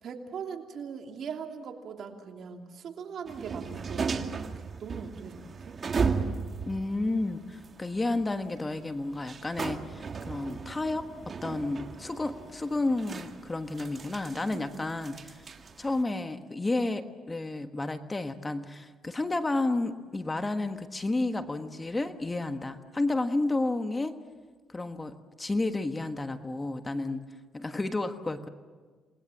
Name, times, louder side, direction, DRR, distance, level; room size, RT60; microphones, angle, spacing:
voice 1, 0.0-5.8 14.5-14.9, right 6 dB, 65° right, 3 dB, 2.9 m, -41 dB
sound 1, 3.3-16.0, right 5 dB, 45° right, 1.7 m, -36 dB
voice 2, 6.7-11.1 11.4-15.4 15.8-24.2 24.7-27.2 27.5-28.5, left 2 dB, 20° left, 8 dB, 1.4 m, -31 dB
28.5 x 20.5 x 7.3 m, 1.5 s
cardioid pair, 90°, 0 cm